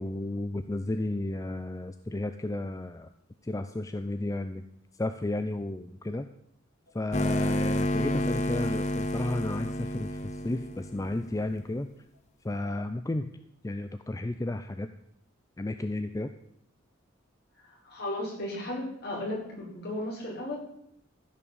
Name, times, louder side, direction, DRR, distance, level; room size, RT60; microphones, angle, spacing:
voice 1, 0.0-3.1 3.4-4.6 5.0-6.3 6.9-11.9 12.4-13.3 13.6-14.9 15.6-16.3, left 2 dB, 15° left, 9 dB, 0.5 m, -33 dB
sound 1, 7.1-11.5, equal, 35° left, 1.0 m, -30 dB
voice 2, 17.8-20.6, left 1 dB, 55° left, -2 dB, 5.0 m, -35 dB
15.0 x 6.0 x 6.9 m, 0.73 s
head